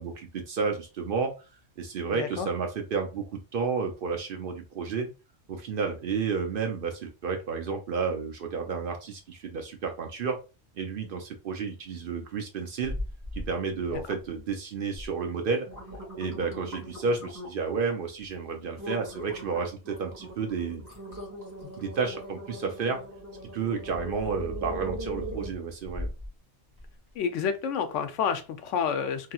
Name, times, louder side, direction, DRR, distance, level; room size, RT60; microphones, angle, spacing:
voice 1, 0.0-1.3 1.8-5.1 5.5-10.4 10.8-12.9 13.3-15.7 16.2-20.8 21.8-23.0 23.5-26.1, right 5 dB, 60° right, 0.7 m, -31 dB
voice 2, 2.1-2.5 13.9-14.0 21.6-21.7 27.2-29.3, left 7 dB, 90° left, 0.9 m, -29 dB
sound 1, 12.8-13.5 13.9-14.4 14.9-15.1 15.5-17.7 18.2-18.4 18.8-26.3 26.8-26.9, equal, 20° right, 1.0 m, -39 dB
3.0 x 2.7 x 2.3 m
omnidirectional pair, 1.2 m